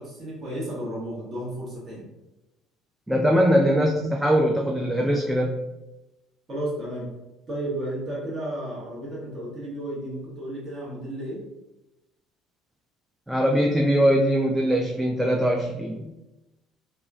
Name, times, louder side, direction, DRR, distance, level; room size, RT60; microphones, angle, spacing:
voice 1, 0.0-2.1 6.5-7.1 7.5-11.4, right 1 dB, 35° right, -6 dB, 1.0 m, -33 dB
voice 2, 3.1-5.6 13.3-16.1, equal, 5° right, 0 dB, 0.3 m, -21 dB
2.9 x 2.3 x 2.4 m, 0.98 s
figure-of-eight pair, 55°, 0 cm